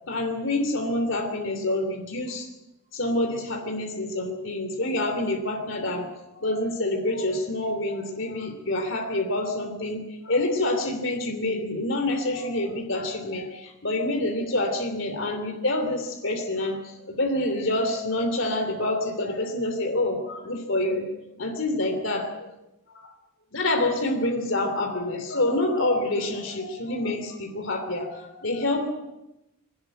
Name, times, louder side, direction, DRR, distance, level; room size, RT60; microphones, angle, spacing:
voice 1, 0.1-2.5 2.9-21.1 21.4-22.5 22.9-23.1 23.5-28.9, left 1 dB, 65° left, 3 dB, 3.1 m, -27 dB
21.5 x 18.5 x 9.2 m, 0.92 s
head